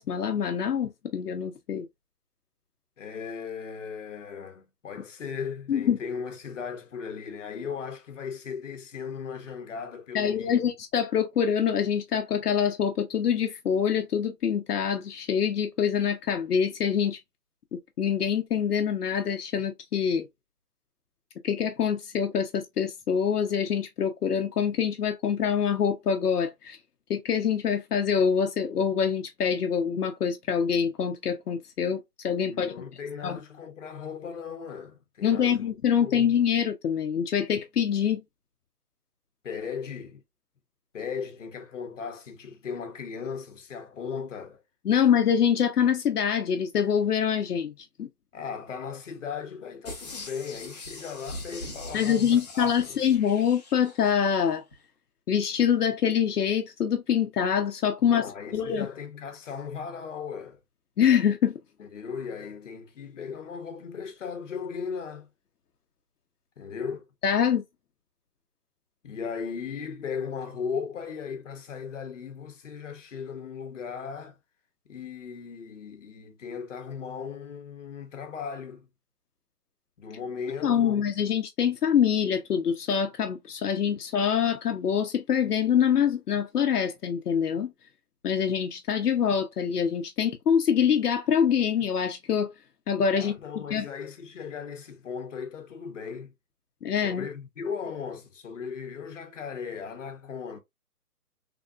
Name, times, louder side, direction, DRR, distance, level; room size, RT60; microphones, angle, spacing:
voice 1, 0.0-1.9 5.7-6.0 10.1-17.2 17.7-20.3 21.4-26.8 27.1-32.7 33.2-33.4 35.2-38.2 44.8-48.1 51.9-54.6 55.3-58.3 58.5-58.9 61.0-61.6 67.2-67.6 80.6-87.7 88.2-92.5 92.9-93.3 93.7-93.9 96.8-97.3, left 8 dB, 80° left, 0.7 m, -25 dB
voice 2, 3.0-10.6 32.4-35.7 36.0-36.3 39.4-40.2 40.9-44.6 48.3-53.0 58.0-60.6 61.8-65.3 66.6-67.0 69.0-74.4 74.9-78.9 80.0-81.0 93.1-96.3 97.0-100.6, left 6 dB, 55° left, 0.9 m, -37 dB
FX air escape, 49.8-54.3 54.7-54.8, left 2 dB, 25° left, 0.8 m, -42 dB
3.4 x 2.5 x 2.3 m
hypercardioid pair, 160°, 46 cm